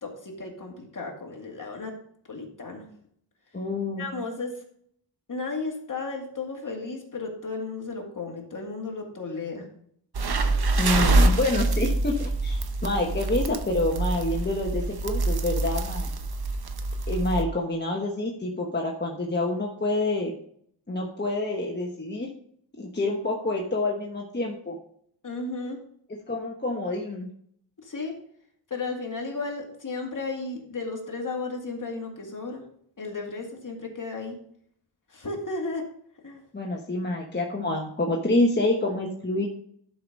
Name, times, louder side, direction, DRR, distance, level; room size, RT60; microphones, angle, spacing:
voice 1, 0.0-1.9 2.3-2.9 4.0-4.6 5.3-9.7 25.2-25.8 27.8-28.1 28.7-32.6 33.0-34.4 35.1-35.8 36.2-36.4, left 3 dB, 45° left, 1 dB, 2.2 m, -34 dB
voice 2, 3.5-4.1 10.8-16.1 17.1-20.4 20.9-22.3 22.8-24.8 26.1-27.3 36.5-39.5, left 2 dB, 25° left, 0 dB, 1.2 m, -27 dB
sound 1, 10.1-17.4, right 2 dB, 60° right, 0.9 m, -25 dB
11.5 x 5.0 x 5.2 m, 0.65 s
wide cardioid pair, 115°, 44 cm